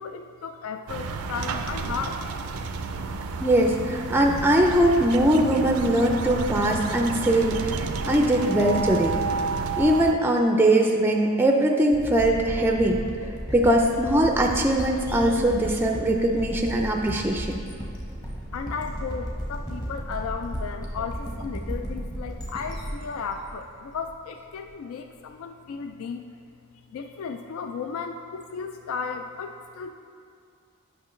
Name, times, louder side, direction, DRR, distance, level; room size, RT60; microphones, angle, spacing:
voice 1, 0.0-2.2 18.5-26.2 26.9-29.9, left 5 dB, 75° left, 6 dB, 0.3 m, -34 dB
sound 1, 0.9-10.1, right 4 dB, 90° right, 0.4 m, -31 dB
voice 2, 3.4-9.2 9.8-13.0 13.5-17.6, right 1 dB, 10° right, 1 dB, 0.4 m, -21 dB
sound 2, 11.9-24.5, equal, 20° left, 0.9 m, -34 dB
8.4 x 5.9 x 3.1 m, 2.4 s
head